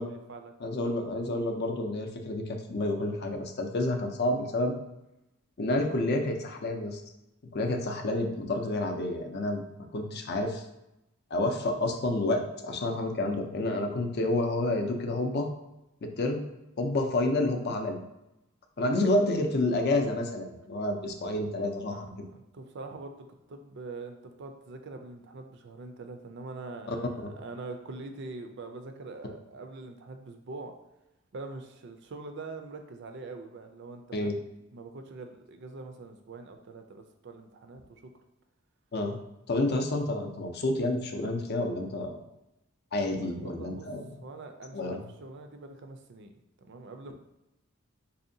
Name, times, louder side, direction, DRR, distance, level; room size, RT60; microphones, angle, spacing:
voice 1, 0.0-0.9 16.9-17.1 18.8-19.0 21.9-30.7 31.3-34.4 34.7-38.1 43.0-43.9 44.2-46.3 46.6-47.1, right 3 dB, 55° right, 6 dB, 0.4 m, -44 dB
voice 2, 0.6-4.7 5.6-7.0 7.5-9.6 9.9-10.6 11.3-15.5 16.0-16.4 16.8-18.0 18.8-22.3 26.9-27.0 34.1-34.3 38.9-39.2 39.5-42.2 42.9-44.0 44.7-45.0, left 2 dB, 50° left, 4 dB, 0.5 m, -29 dB
4.2 x 2.7 x 2.6 m, 0.92 s
head